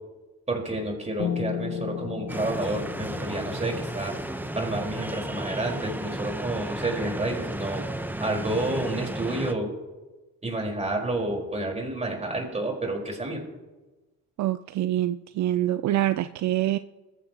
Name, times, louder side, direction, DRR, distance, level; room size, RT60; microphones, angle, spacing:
voice 1, 0.5-4.2 4.5-7.8 8.2-9.7 10.4-13.4, right 2 dB, 20° right, 0 dB, 4.5 m, -29 dB
Piano, 1.2-6.5, left 8 dB, 80° left, 1.4 m, -36 dB
sound 1, 2.3-9.5, right 1 dB, 5° right, 0.9 m, -34 dB
voice 2, 14.4-16.8, right 13 dB, 70° right, 12 dB, 0.5 m, -25 dB
21.0 x 14.5 x 2.9 m, 1.1 s
cardioid pair, 90°, 30 cm